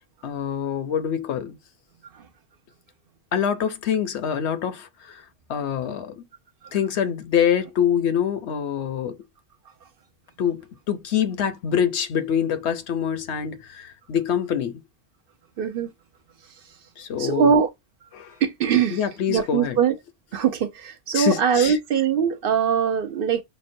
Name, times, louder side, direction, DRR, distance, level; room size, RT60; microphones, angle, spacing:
voice 1, 0.2-1.6 3.3-5.2 5.5-6.2 6.7-9.2 10.4-14.8 17.0-17.5 18.1-18.3 18.9-19.8 21.1-21.8, left 8 dB, 75° left, 0.9 m, -25 dB
voice 2, 15.6-15.9 17.2-17.7 18.4-19.9 20.3-23.4, right 7 dB, 60° right, 0.7 m, -22 dB
5.8 x 2.2 x 2.6 m
omnidirectional pair, 1.1 m